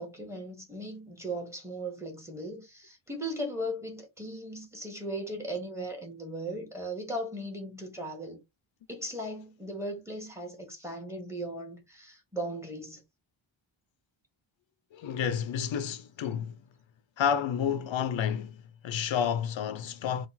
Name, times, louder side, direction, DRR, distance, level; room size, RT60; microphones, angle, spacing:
voice 1, 0.0-8.4 8.9-13.0, right 1 dB, 5° right, 1.4 m, -37 dB
voice 2, 14.9-16.6 17.2-20.3, left 8 dB, 70° left, 0.6 m, -30 dB
3.9 x 2.4 x 4.2 m
wide cardioid pair, 145°, 47 cm